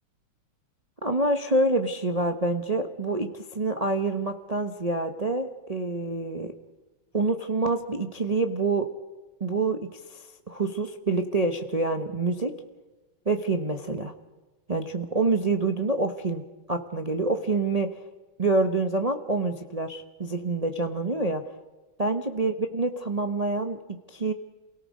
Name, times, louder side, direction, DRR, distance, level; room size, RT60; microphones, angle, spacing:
voice 1, 1.0-6.5 7.1-8.9 9.4-12.5 13.3-14.1 14.7-16.4 16.7-17.9 18.4-21.4 22.0-23.8 24.1-24.3, right 2 dB, 40° right, 6 dB, 0.5 m, -27 dB
28.5 x 18.0 x 5.2 m, 1.2 s
omnidirectional pair, 2.4 m